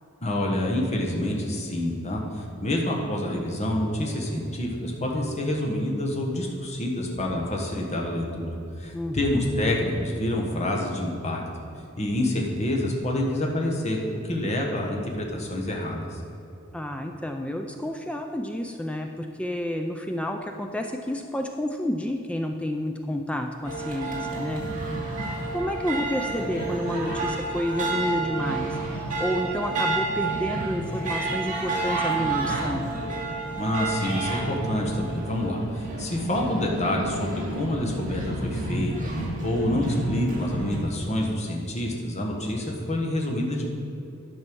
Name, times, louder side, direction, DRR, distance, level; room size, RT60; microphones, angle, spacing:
voice 1, 0.2-11.4 12.0-16.2 33.5-39.1 39.4-43.7, left 1 dB, 35° left, -1 dB, 1.4 m, -27 dB
voice 2, 8.9-9.5 16.7-24.6 25.5-32.9, left 1 dB, 5° left, 4 dB, 0.4 m, -30 dB
sound 1, 23.6-40.8, right 2 dB, 40° right, 2.3 m, -30 dB
sound 2, 33.3-40.5, right 1 dB, 85° right, 0.6 m, -42 dB
11.0 x 5.5 x 6.2 m, 2.7 s
head